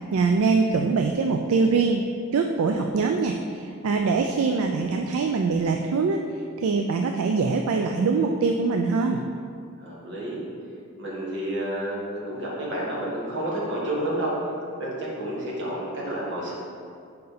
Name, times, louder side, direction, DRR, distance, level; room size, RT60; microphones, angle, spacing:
voice 1, 0.1-9.2, right 4 dB, 70° right, 3 dB, 0.3 m, -23 dB
voice 2, 9.8-10.4 10.9-14.3 14.8-16.5, right 1 dB, 55° right, -5 dB, 1.5 m, -30 dB
5.4 x 4.6 x 5.0 m, 2.4 s
head